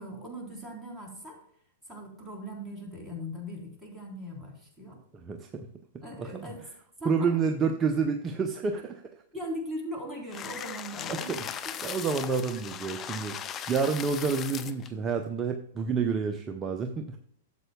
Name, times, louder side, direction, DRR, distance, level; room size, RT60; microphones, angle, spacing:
voice 1, 0.0-1.4 1.9-5.0 6.0-6.6 7.0-7.4 9.3-11.5, equal, ahead, -3 dB, 3.7 m, -39 dB
voice 2, 5.1-5.7 6.2-6.5 7.0-9.0 11.1-11.4 11.8-13.4 13.7-17.2, right 5 dB, 25° right, 6 dB, 0.7 m, -29 dB
sound 1, 10.3-14.9, left 9 dB, 30° left, 0.6 m, -38 dB
12.5 x 7.8 x 2.3 m, 0.65 s
hypercardioid pair, 110°, 0 cm